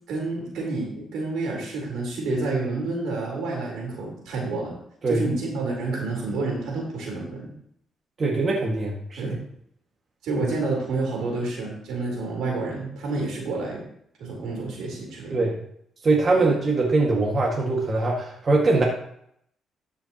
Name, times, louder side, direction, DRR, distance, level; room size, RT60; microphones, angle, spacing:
voice 1, 0.1-4.8 5.1-7.5 9.2-9.4 10.2-13.8 14.2-15.5, right 3 dB, 85° right, -2 dB, 3.7 m, -29 dB
voice 2, 8.2-9.3 15.3-15.5 16.0-18.8, right 3 dB, 40° right, -2 dB, 1.8 m, -22 dB
13.0 x 5.8 x 2.9 m, 0.69 s
cardioid pair, 90°, 0 cm